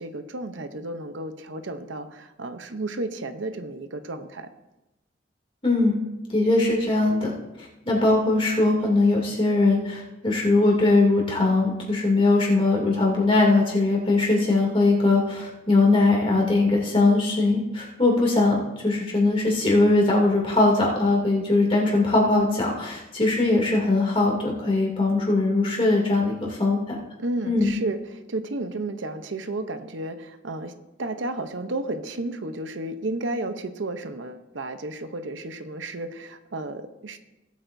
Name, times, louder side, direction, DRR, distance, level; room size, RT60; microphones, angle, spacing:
voice 1, 0.0-4.5 27.2-30.7 31.0-37.2, right 2 dB, 80° right, 8 dB, 0.8 m, -32 dB
voice 2, 5.6-6.0 6.3-7.3 7.6-27.0 27.4-27.7, left 2 dB, 30° left, -2 dB, 2.7 m, -21 dB
18.0 x 8.5 x 2.7 m, 0.99 s
head